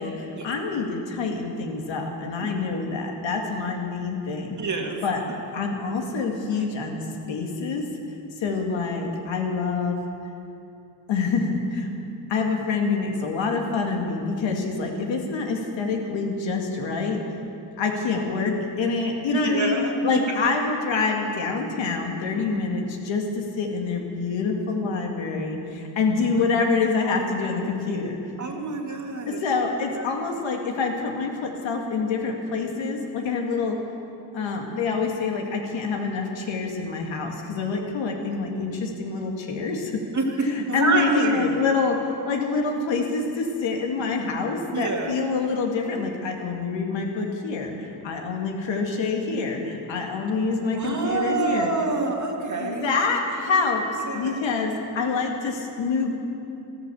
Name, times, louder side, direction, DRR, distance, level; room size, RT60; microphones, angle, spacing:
voice 1, 0.0-4.6 5.0-5.2 5.5-7.0 7.3-7.9 8.4-10.0 11.1-11.9 12.3-17.2 17.8-28.2 29.3-33.8 34.3-40.0 40.4-51.7 52.6-56.1, left 4 dB, 75° left, 1 dB, 2.2 m, -26 dB
voice 2, 4.6-5.0 9.0-9.1 19.3-19.9 28.4-29.4 30.0-30.1 40.1-40.3 40.7-41.6 44.7-45.1 50.7-52.9 54.1-54.5, right 3 dB, 40° right, 1 dB, 1.9 m, -27 dB
14.0 x 13.5 x 7.0 m, 2.7 s
cardioid pair, 115°, 46 cm